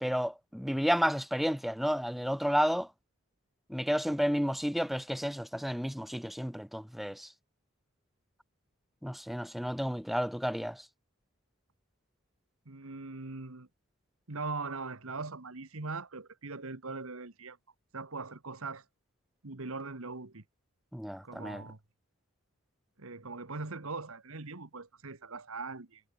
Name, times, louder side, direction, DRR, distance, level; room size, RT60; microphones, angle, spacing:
voice 1, 0.0-2.9 3.7-7.3 9.0-10.8 20.9-21.6, equal, ahead, 0.6 m, -31 dB
voice 2, 12.6-13.7 14.3-17.6 17.9-18.8 19.4-20.4 21.2-21.8 23.0-26.0, right 3 dB, 75° right, 1.5 m, -41 dB
head